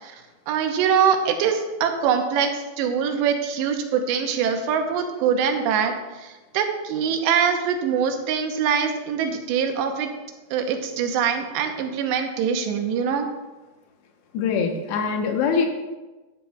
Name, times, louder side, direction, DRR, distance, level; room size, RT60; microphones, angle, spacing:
voice 1, 0.0-5.9 6.2-10.1 10.5-13.3, right 7 dB, 90° right, 5 dB, 3.1 m, -23 dB
voice 2, 14.3-15.7, left 5 dB, 85° left, 3 dB, 3.3 m, -23 dB
12.0 x 11.5 x 2.4 m, 1.2 s
omnidirectional pair, 4.9 m